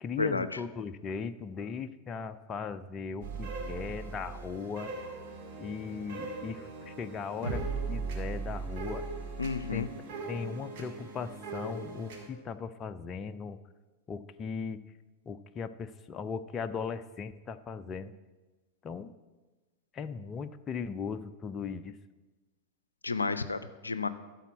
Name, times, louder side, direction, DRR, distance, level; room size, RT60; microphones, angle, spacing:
voice 1, 0.0-4.9 5.6-9.1 9.7-13.6 14.1-14.8 15.3-18.1 18.8-19.1 19.9-22.0, left 5 dB, 25° left, 10 dB, 0.5 m, -38 dB
sound 1, 3.2-12.3, right 4 dB, 45° right, 2.1 m, -39 dB
voice 2, 9.4-9.9 23.0-24.1, left 4 dB, 80° left, 13 dB, 0.5 m, -31 dB
12.5 x 4.2 x 8.1 m, 1.2 s
figure-of-eight pair, 90°, 0 cm